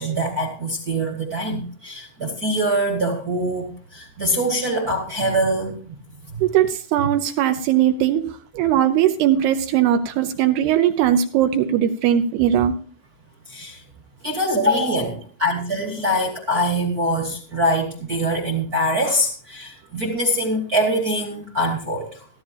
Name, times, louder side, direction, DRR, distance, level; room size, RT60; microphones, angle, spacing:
voice 1, 0.0-6.0 13.5-13.8 14.2-22.3, equal, 35° right, 1 dB, 1.5 m, -23 dB
voice 2, 6.4-12.7, right 10 dB, 75° right, 7 dB, 2.6 m, -19 dB
15.0 x 14.5 x 2.8 m, 0.43 s
omnidirectional pair, 5.1 m